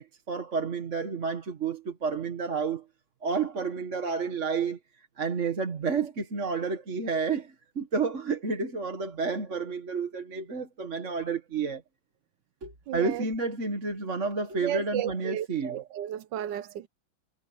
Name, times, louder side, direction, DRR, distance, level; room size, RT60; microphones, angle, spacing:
voice 1, 0.0-2.8 3.2-4.8 5.2-11.8 12.6-15.8, right 4 dB, 35° right, 1.9 m, -30 dB
voice 2, 12.9-13.2 14.6-16.9, right 12 dB, 70° right, 1.2 m, -33 dB
omnidirectional pair, 2.3 m